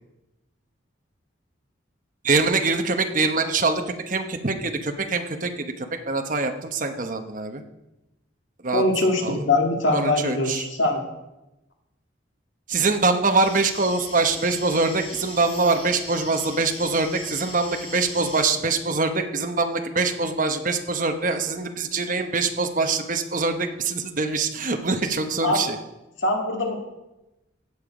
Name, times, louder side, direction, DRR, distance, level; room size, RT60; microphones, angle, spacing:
voice 1, 2.2-7.6 8.6-8.8 9.2-9.4 9.9-10.7 12.7-25.8, right 3 dB, 40° right, 6 dB, 1.0 m, -24 dB
voice 2, 8.7-11.1 25.4-25.6 26.2-26.8, left 2 dB, 75° left, 2 dB, 1.9 m, -22 dB
sound 1, 13.4-18.5, left 2 dB, 30° left, 2.6 m, -39 dB
16.0 x 7.1 x 5.0 m, 0.97 s
head